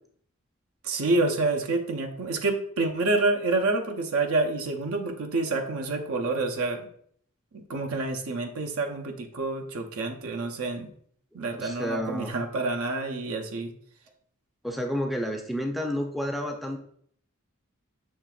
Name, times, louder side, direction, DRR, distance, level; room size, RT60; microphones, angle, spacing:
voice 1, 0.8-6.9 7.5-10.9 11.3-13.7, right 2 dB, 80° right, 3 dB, 0.7 m, -28 dB
voice 2, 11.6-12.3 14.6-16.8, equal, ahead, 2 dB, 0.4 m, -30 dB
6.5 x 3.3 x 2.3 m, 0.62 s
head